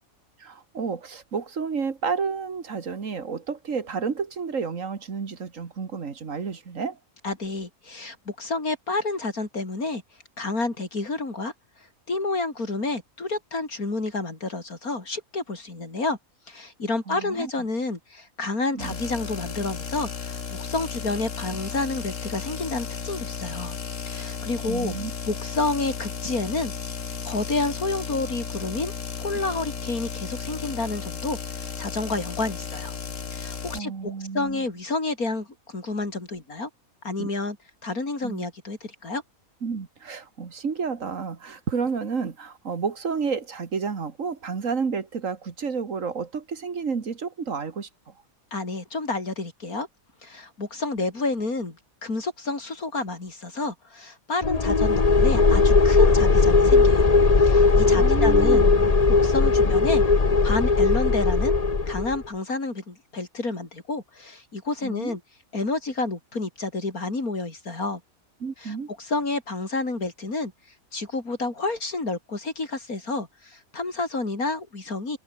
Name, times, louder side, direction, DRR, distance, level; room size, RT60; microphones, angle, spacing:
voice 1, 0.4-7.0 17.1-17.5 18.7-19.0 24.7-25.1 33.7-34.6 37.2-37.3 38.2-38.4 39.6-48.1 57.8-58.9 59.8-60.0 64.8-65.2 68.4-68.9, right 5 dB, 65° right, 2.2 m, -31 dB
voice 2, 7.2-10.0 10.4-11.5 12.1-16.2 16.5-23.8 24.0-24.9 25.3-26.7 27.2-28.9 29.2-32.9 33.3-36.7 37.0-37.6 37.8-39.2 48.5-49.9 50.2-57.1 57.4-58.7 59.1-60.0 60.4-61.6 61.9-65.2 65.5-68.0 68.6-70.5 70.9-75.2, left 3 dB, 85° left, 4.9 m, -30 dB
sound 1, 18.8-33.8, left 6 dB, 60° left, 2.0 m, -34 dB
sound 2, 54.4-62.2, left 4 dB, 30° left, 1.3 m, -18 dB
omnidirectional pair, 1.5 m